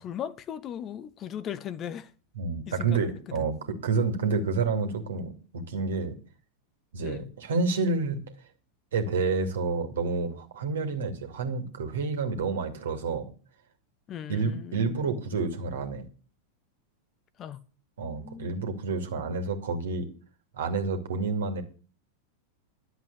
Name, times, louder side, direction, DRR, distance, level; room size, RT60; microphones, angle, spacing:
voice 1, 0.0-2.1 2.7-3.5 7.0-7.3 14.1-15.0 17.4-17.6 18.2-18.6, left 9 dB, 30° left, 0.9 m, -38 dB
voice 2, 2.4-3.5 3.8-6.2 6.9-8.2 8.9-13.3 14.3-16.1 18.0-20.1 20.5-21.6, right 4 dB, 65° right, 2.4 m, -29 dB
11.5 x 7.9 x 8.3 m
figure-of-eight pair, 90°, 0 cm